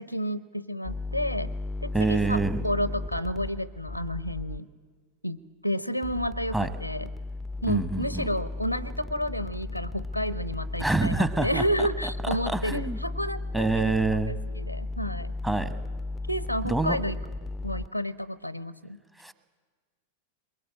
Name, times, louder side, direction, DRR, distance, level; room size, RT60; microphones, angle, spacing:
voice 1, 0.0-1.5 1.8-4.7 5.2-7.1 7.6-13.9 14.3-15.3 16.3-17.2 17.6-19.0, equal, 90° left, 18 dB, 0.7 m, -31 dB
sound 1, 0.8-4.6 6.0-17.9, left 2 dB, 10° left, 0.6 m, -35 dB
voice 2, 1.9-2.6 6.5-6.7 7.7-8.3 10.8-11.9 12.5-13.0 13.5-14.3 15.4-15.7 16.6-17.0 19.2-19.3, right 2 dB, 10° right, 11 dB, 1.3 m, -26 dB
22.0 x 21.0 x 8.6 m, 1.6 s
figure-of-eight pair, 90°, 0 cm